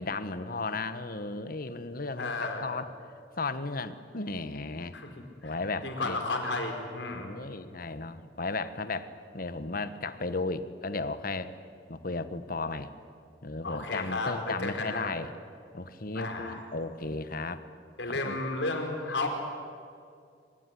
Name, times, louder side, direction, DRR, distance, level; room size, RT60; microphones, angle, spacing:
voice 1, 0.0-2.9 3.4-5.0 5.4-6.2 7.0-9.1 9.3-11.5 11.9-12.9 13.4-15.4 15.7-17.6 18.2-18.4, left 3 dB, 50° left, 12 dB, 1.3 m, -35 dB
voice 2, 2.2-2.7 4.9-5.1 5.4-5.5 5.8-7.4 13.6-15.1 16.1-16.6 18.0-19.3, left 2 dB, 70° left, 4 dB, 4.6 m, -33 dB
24.5 x 21.5 x 10.0 m, 2.3 s
head